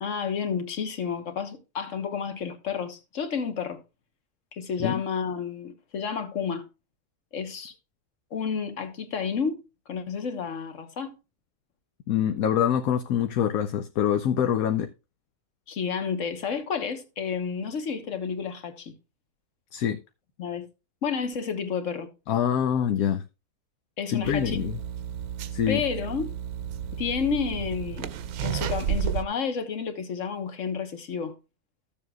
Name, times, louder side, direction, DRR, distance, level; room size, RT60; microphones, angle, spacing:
voice 1, 0.0-3.8 4.5-6.7 7.3-7.7 8.3-9.6 9.9-11.1 15.7-18.9 20.4-20.7 21.0-22.1 24.0-24.6 25.7-26.3 27.0-28.1 28.4-31.3, left 6 dB, 60° left, 1.5 m, -30 dB
voice 2, 12.1-14.9 19.7-20.0 22.3-23.2 24.1-24.8 25.5-25.8, left 9 dB, 75° left, 1.1 m, -25 dB
sound 1, 24.2-29.2, right 9 dB, 85° right, 1.2 m, -32 dB
14.0 x 7.2 x 2.3 m
omnidirectional pair, 1.5 m